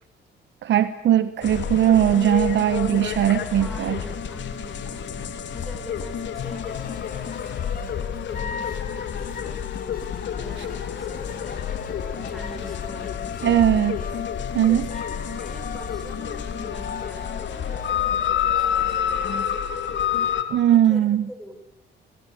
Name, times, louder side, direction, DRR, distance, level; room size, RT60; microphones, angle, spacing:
voice 1, 0.6-4.0 13.4-14.0 14.5-14.8 20.5-21.3, right 11 dB, 65° right, 13 dB, 1.1 m, -19 dB
sound 1, 1.4-20.4, left 8 dB, 65° left, 3.3 m, -29 dB
voice 2, 3.6-9.7 10.4-14.0 14.7-19.7 20.7-21.6, equal, ahead, 6 dB, 6.8 m, -44 dB
sound 2, 6.4-19.5, left 6 dB, 45° left, 2.6 m, -38 dB
30.0 x 21.5 x 8.6 m, 0.82 s
cardioid pair, 90°, 20 cm